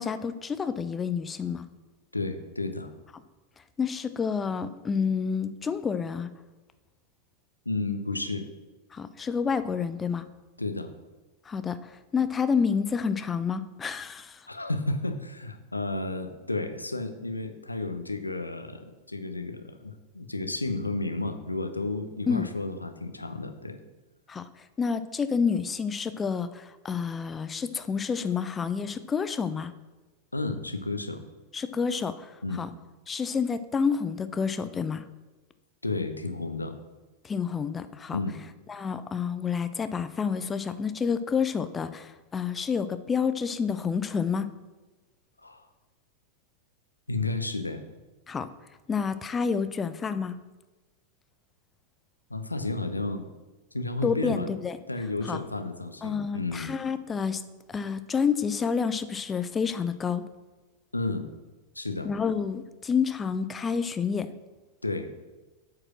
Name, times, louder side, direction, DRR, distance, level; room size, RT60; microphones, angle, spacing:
voice 1, 0.0-1.7 3.8-6.3 8.9-10.2 11.5-14.5 22.3-22.5 24.3-29.7 31.5-32.7 33.1-35.0 37.2-38.2 38.7-44.5 48.3-48.5 48.9-50.4 54.0-54.8 55.3-55.4 56.0-57.4 57.7-60.2 62.0-64.3, left 6 dB, 20° left, 12 dB, 0.5 m, -29 dB
voice 2, 2.1-2.9 7.7-8.5 10.6-10.9 14.5-23.8 30.3-31.2 32.4-32.7 35.8-36.8 38.1-38.4 45.4-45.7 47.1-47.8 52.3-53.3 53.7-54.5 54.9-56.7 60.9-61.3 61.7-62.1 64.8-65.1, left 2 dB, 85° left, 8 dB, 0.7 m, -32 dB
8.7 x 4.8 x 6.1 m, 1.2 s
figure-of-eight pair, 90°, 0 cm